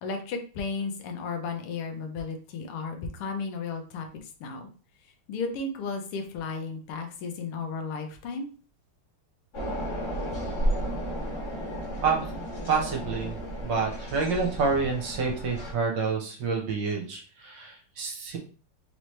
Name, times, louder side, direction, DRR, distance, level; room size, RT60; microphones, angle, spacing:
voice 1, 0.0-4.7 5.3-8.5, left 4 dB, 90° left, 4 dB, 1.7 m, -34 dB
sound 1, 9.5-15.7, equal, 40° left, 1.4 m, -33 dB
voice 2, 12.7-18.4, right 4 dB, 65° right, 0 dB, 1.6 m, -28 dB
4.2 x 3.0 x 3.1 m, 0.39 s
omnidirectional pair, 2.4 m